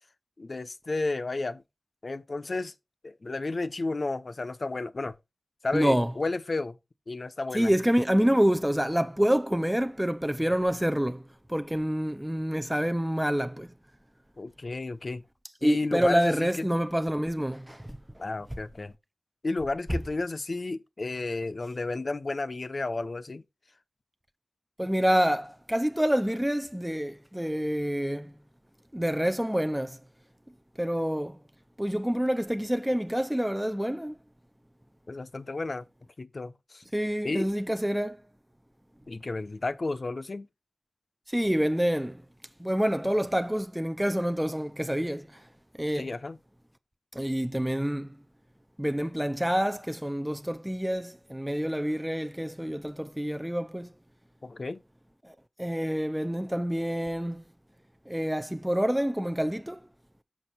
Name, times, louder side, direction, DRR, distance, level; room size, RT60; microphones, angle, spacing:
voice 1, 0.4-1.6 2.0-2.7 3.0-5.2 5.6-6.8 7.1-7.7 14.4-15.2 15.6-16.7 18.2-18.9 19.4-23.4 35.1-35.8 36.2-36.8 37.2-37.5 39.1-40.5 45.9-46.4 54.4-54.8, left 3 dB, 50° left, 0.7 m, -32 dB
voice 2, 5.7-6.1 7.5-13.7 15.6-18.0 24.8-28.3 28.9-30.0 30.8-31.4 31.8-34.2 36.9-38.2 41.3-42.2 42.6-45.4 45.8-46.1 47.1-48.2 48.8-53.9 55.2-57.4 58.1-59.8, equal, 5° right, 0.6 m, -27 dB
6.2 x 6.1 x 4.1 m
wide cardioid pair, 80°, 0 cm